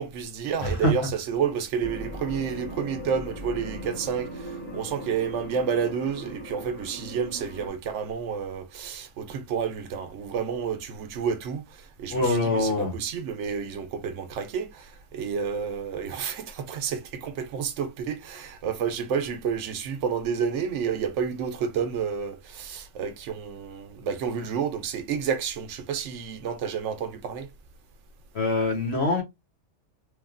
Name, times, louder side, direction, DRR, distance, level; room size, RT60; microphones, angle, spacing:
voice 1, 0.0-27.5, right 7 dB, 85° right, 0.9 m, -30 dB
voice 2, 0.6-0.9 12.1-12.9 28.3-29.2, left 2 dB, 65° left, 1.1 m, -24 dB
sound 1, 1.8-7.7, equal, 20° left, 0.9 m, -39 dB
3.2 x 2.2 x 2.4 m
omnidirectional pair, 1.2 m